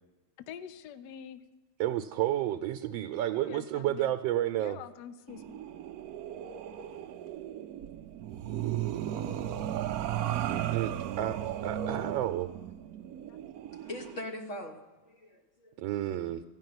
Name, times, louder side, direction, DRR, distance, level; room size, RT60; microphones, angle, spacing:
voice 1, 0.4-1.4 3.4-4.1 4.6-5.6 13.3-13.4, left 9 dB, 70° left, 12 dB, 1.1 m, -46 dB
voice 2, 1.8-4.8 10.5-11.4 11.6-12.5 15.8-16.4, right 12 dB, 90° right, 6 dB, 1.3 m, -31 dB
sound 1, 5.3-14.2, right 11 dB, 70° right, 0.8 m, -35 dB
voice 3, 13.7-15.8, left 1 dB, 45° left, 3 dB, 1.6 m, -42 dB
15.0 x 5.7 x 9.4 m, 1.2 s
omnidirectional pair, 2.1 m